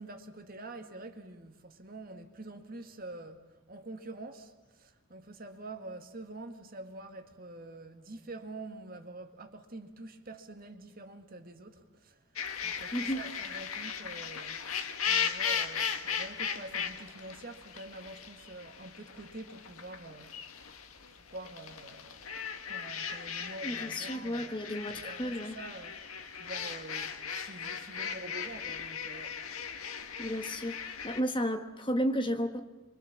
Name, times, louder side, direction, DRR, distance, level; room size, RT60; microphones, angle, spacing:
voice 1, 0.0-12.2 12.6-14.6 15.1-20.4 21.3-22.4 22.7-26.0 26.3-29.4, right 2 dB, 45° right, 1.8 m, -46 dB
sound 1, 12.4-31.2, left 7 dB, 85° left, 1.8 m, -37 dB
voice 2, 12.9-13.2 23.6-25.5 30.2-32.6, equal, 25° left, 1.4 m, -33 dB
27.0 x 24.0 x 7.3 m
head